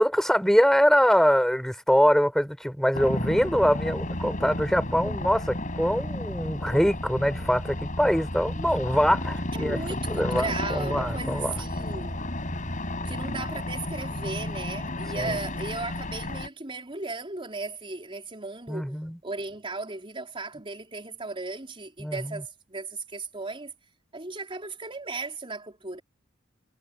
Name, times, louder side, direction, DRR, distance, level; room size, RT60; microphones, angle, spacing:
voice 1, 0.0-9.8 10.1-11.5 15.1-15.3 18.7-19.2 22.0-22.4, equal, ahead, 7.1 m, -23 dB
sound 1, 2.9-16.5, left 1 dB, 40° left, 7.3 m, -32 dB
voice 2, 9.5-12.3 13.0-18.9 19.2-23.7 24.1-26.0, right 3 dB, 30° right, 4.4 m, -36 dB
head